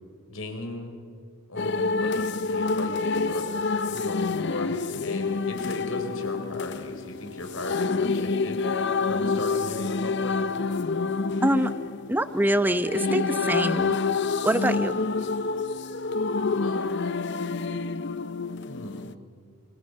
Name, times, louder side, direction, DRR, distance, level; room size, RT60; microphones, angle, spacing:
voice 1, 0.3-0.9 1.5-3.5 3.8-8.6 9.1-10.3 16.6-17.1 18.7-19.1, left 1 dB, 85° left, 5 dB, 4.3 m, -37 dB
sound 1, 1.6-19.1, left 4 dB, 55° left, 0.7 m, -28 dB
voice 2, 12.1-14.0 14.4-15.0, right 1 dB, 10° right, 11 dB, 0.8 m, -24 dB
28.0 x 27.0 x 6.5 m, 2.2 s
head